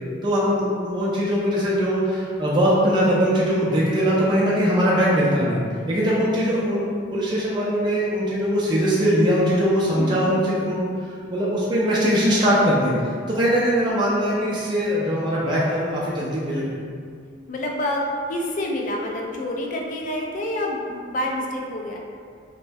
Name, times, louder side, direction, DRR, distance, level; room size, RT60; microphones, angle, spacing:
voice 1, 0.2-5.6 5.9-6.8 7.1-16.6, equal, 25° right, -7 dB, 0.4 m, -21 dB
voice 2, 10.0-10.3 13.6-13.8 17.5-18.0 18.3-22.0, left 1 dB, 45° left, 0 dB, 0.3 m, -28 dB
3.3 x 2.1 x 2.5 m, 2.2 s
head